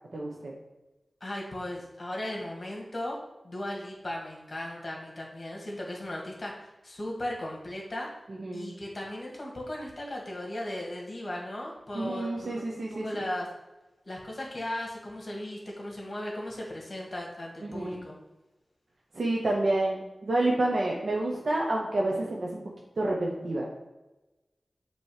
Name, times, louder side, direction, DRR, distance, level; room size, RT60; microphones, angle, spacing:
voice 1, 0.1-0.5 8.3-8.7 11.9-13.3 17.6-18.0 19.1-22.6 23.0-23.7, right 2 dB, 70° right, -2 dB, 0.8 m, -29 dB
voice 2, 1.2-3.2 3.4-8.1 8.5-13.5 14.0-18.2, left 1 dB, 45° left, -2 dB, 1.7 m, -37 dB
6.9 x 3.1 x 4.8 m, 1.1 s
wide cardioid pair, 70°, 0 cm